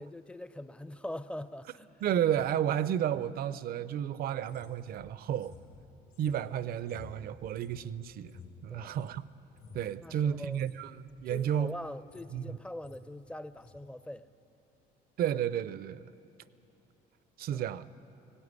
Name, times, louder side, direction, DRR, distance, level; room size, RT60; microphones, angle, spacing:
voice 1, 0.0-1.9 8.7-9.0 10.0-10.7 11.3-14.3 17.5-17.7, left 1 dB, 5° left, 14 dB, 0.6 m, -42 dB
voice 2, 2.0-5.5 6.2-8.4 8.6-9.2 9.7-11.7 12.3-12.5 15.2-16.1 17.4-17.9, right 10 dB, 65° right, 16 dB, 0.6 m, -32 dB
sound 1, 4.4-9.2 9.5-9.9 10.4-10.7 11.1-11.5 11.8-12.4 12.6-13.0 13.6-13.8, left 5 dB, 70° left, 4.3 m, -54 dB
18.5 x 16.5 x 9.6 m, 2.8 s
cardioid pair, 110°, 17 cm